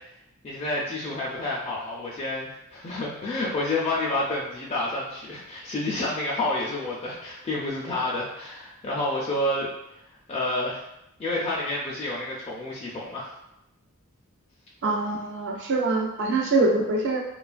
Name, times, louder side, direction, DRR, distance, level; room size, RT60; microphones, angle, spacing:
voice 1, 0.4-9.7 10.3-10.9 11.2-13.3, left 2 dB, 30° left, -4 dB, 0.4 m, -29 dB
voice 2, 14.8-17.2, right 2 dB, 60° right, 0 dB, 0.5 m, -24 dB
3.1 x 2.2 x 2.4 m, 0.84 s
head